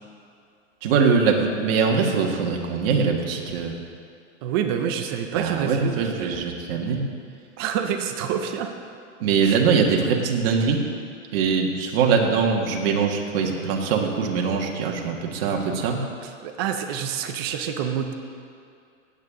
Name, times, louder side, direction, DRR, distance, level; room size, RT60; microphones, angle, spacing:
voice 1, 0.8-3.8 5.4-7.0 9.2-10.8 11.3-16.0, right 5 dB, 45° right, 1 dB, 1.7 m, -22 dB
voice 2, 4.4-6.0 7.6-8.7 9.4-9.6 16.2-18.1, right 8 dB, 20° right, 6 dB, 0.4 m, -27 dB
17.0 x 8.7 x 3.7 m, 2.4 s
hypercardioid pair, 145°, 39 cm